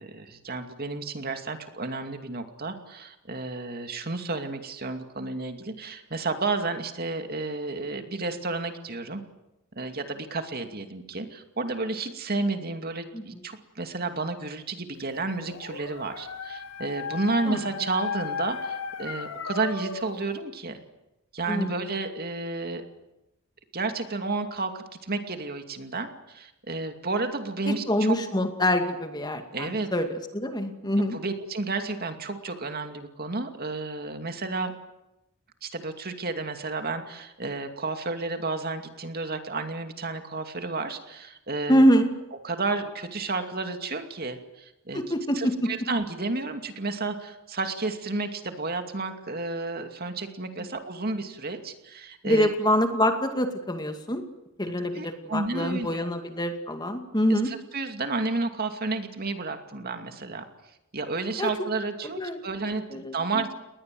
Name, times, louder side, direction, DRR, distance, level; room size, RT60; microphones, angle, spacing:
voice 1, 0.0-9.2 9.7-20.8 21.3-22.8 23.7-28.2 29.5-29.9 31.1-34.7 35.6-41.8 42.4-45.0 45.3-52.5 54.8-56.1 57.3-60.4 60.9-63.5, right 3 dB, 45° right, 6 dB, 2.5 m, -31 dB
Dog, 15.2-20.2, left 5 dB, 80° left, 3.2 m, -35 dB
voice 2, 21.5-21.9 27.7-31.2 41.7-42.1 44.9-45.7 50.6-50.7 52.2-54.2 54.6-57.5 61.4-61.5 62.2-62.5 62.9-63.4, equal, 20° left, 6 dB, 2.3 m, -25 dB
29.5 x 20.5 x 7.8 m, 0.91 s
head